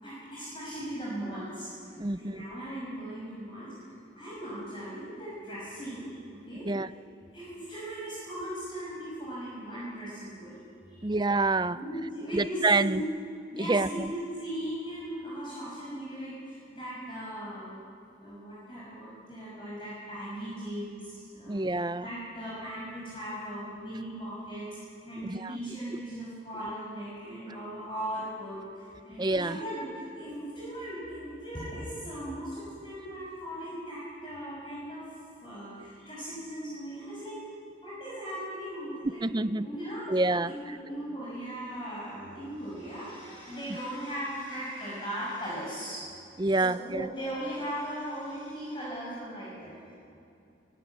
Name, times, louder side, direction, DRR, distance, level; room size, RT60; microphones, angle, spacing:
voice 1, 0.0-3.9 4.1-6.7 7.3-10.6 10.9-11.1 11.7-13.2 13.5-17.8 18.2-21.6 22.0-35.1 35.4-37.4 37.8-46.0 46.6-49.9, right 1 dB, 25° left, -6 dB, 6.0 m, -38 dB
voice 2, 2.0-2.4 6.6-6.9 11.0-11.8 12.3-13.0 13.7-14.1 21.5-22.1 25.2-25.5 29.2-29.6 39.2-39.7 40.1-40.8 46.4-47.1, right 2 dB, 25° right, 14 dB, 0.5 m, -27 dB
23.0 x 22.5 x 8.6 m, 2.6 s
head